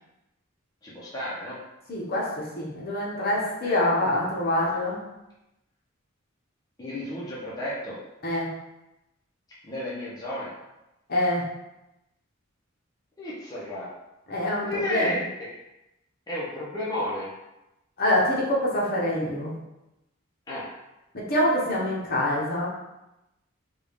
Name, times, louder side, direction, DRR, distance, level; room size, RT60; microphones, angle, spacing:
voice 1, 0.8-1.6 3.6-3.8 6.8-8.0 9.6-10.5 13.2-13.9 14.6-15.3 16.3-17.3 20.5-20.7, left 1 dB, 20° left, -8 dB, 0.6 m, -32 dB
voice 2, 1.9-5.0 8.2-8.5 11.1-11.5 14.3-15.1 18.0-19.5 21.1-22.7, left 1 dB, 45° left, -4 dB, 0.9 m, -25 dB
3.5 x 2.3 x 3.4 m, 0.94 s
head